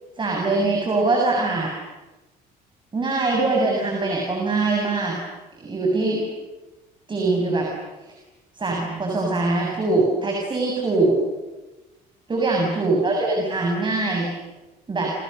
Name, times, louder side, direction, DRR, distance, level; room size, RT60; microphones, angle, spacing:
voice 1, 0.2-1.7 2.9-5.2 5.6-6.2 7.1-7.7 8.5-11.2 12.3-14.3 14.9-15.1, right 3 dB, 30° right, 0 dB, 7.1 m, -22 dB
29.0 x 29.0 x 6.8 m, 1.1 s
cardioid pair, 110°, 17 cm